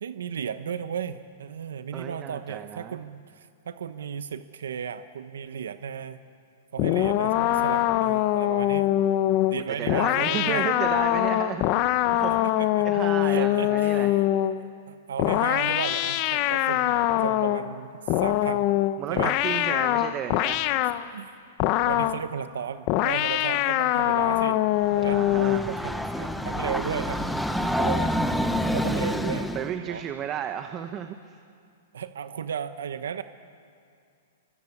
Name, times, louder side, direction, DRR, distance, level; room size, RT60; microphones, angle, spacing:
voice 1, 0.0-6.2 6.7-8.9 9.5-10.7 12.6-12.9 13.2-14.1 14.4-17.9 18.2-18.7 19.1-19.3 21.1-21.3 21.9-24.6 25.0-25.2 25.7-27.4 27.8-28.1 28.7-29.5 29.9-30.0 31.9-33.2, right 8 dB, 90° right, 11 dB, 1.1 m, -34 dB
voice 2, 1.9-3.0 9.7-14.2 19.0-20.7 25.0-25.7 29.5-31.4, right 9 dB, 20° right, 8 dB, 0.9 m, -34 dB
sound 1, 6.8-14.6 15.2-17.7 18.1-21.0 21.6-22.2 22.9-25.7, left 14 dB, 35° left, 0.8 m, -23 dB
Train, 24.8-29.7, equal, ahead, 0.9 m, -28 dB
26.0 x 24.5 x 8.5 m, 2.3 s
hypercardioid pair, 165°, 0 cm